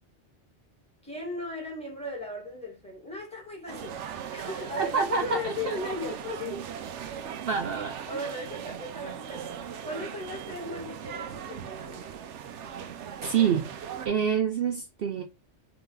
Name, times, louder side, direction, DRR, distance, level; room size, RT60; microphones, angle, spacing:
voice 1, 1.0-6.6 6.9-7.1 8.1-12.1, left 2 dB, 5° left, 2.1 m, -37 dB
sound 1, 3.7-14.1, right 8 dB, 85° right, 1.0 m, -39 dB
voice 2, 4.8-5.8 6.3-6.4 7.4-8.0 13.3-13.7 14.0-15.2, right 7 dB, 60° right, 0.8 m, -27 dB
3.9 x 3.4 x 3.9 m
omnidirectional pair, 1.2 m